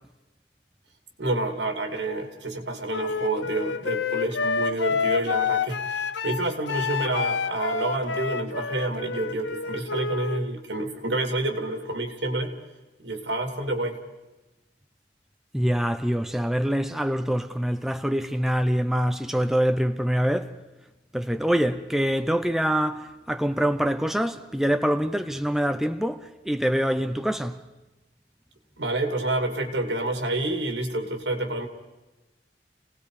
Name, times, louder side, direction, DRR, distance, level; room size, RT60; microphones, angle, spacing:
voice 1, 1.2-12.5 13.0-14.0 28.8-31.7, right 2 dB, 85° right, 2.9 m, -28 dB
Wind instrument woodwind instrument, 2.9-10.4, left 5 dB, 90° left, 0.8 m, -28 dB
voice 2, 15.5-20.5 21.1-27.6, equal, ahead, 0.7 m, -25 dB
29.5 x 18.5 x 5.0 m
head